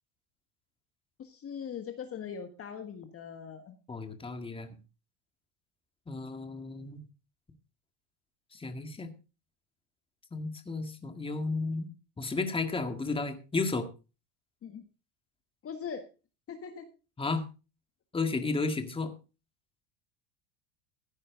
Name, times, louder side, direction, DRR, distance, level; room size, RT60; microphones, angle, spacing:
voice 1, 1.2-3.7 14.6-14.8 15.6-16.0 16.5-16.8, left 7 dB, 30° left, 8 dB, 1.5 m, -41 dB
voice 2, 3.9-4.7 6.1-7.0 8.5-9.1 10.3-11.9 12.2-13.9 17.2-17.4 18.1-19.1, left 3 dB, 10° left, 7 dB, 1.9 m, -33 dB
15.0 x 9.8 x 3.8 m, 0.32 s
supercardioid pair, 135°, 46 cm